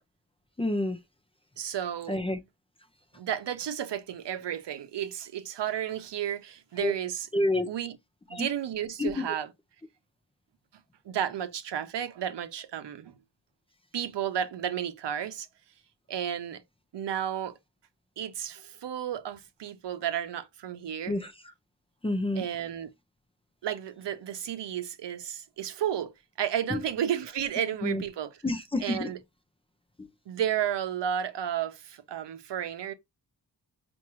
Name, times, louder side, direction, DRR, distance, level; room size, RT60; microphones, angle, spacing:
voice 1, 0.6-1.0 2.1-2.4 6.8-6.9 7.3-7.7 8.3-8.5 9.0-9.2 21.1-21.3 22.0-22.4 26.7-26.8 27.8-28.0 28.4-29.1 30.0-30.1, left 1 dB, 15° left, 0.5 m, -28 dB
voice 2, 1.6-2.2 3.2-7.3 7.7-8.0 8.3-9.5 11.1-13.1 13.9-15.5 16.1-16.6 16.9-17.5 18.2-21.2 22.3-22.9 23.6-26.1 26.4-28.4 28.8-29.2 30.3-32.9, right 10 dB, 80° right, 0.7 m, -32 dB
5.7 x 2.6 x 3.0 m
wide cardioid pair, 175°, 41 cm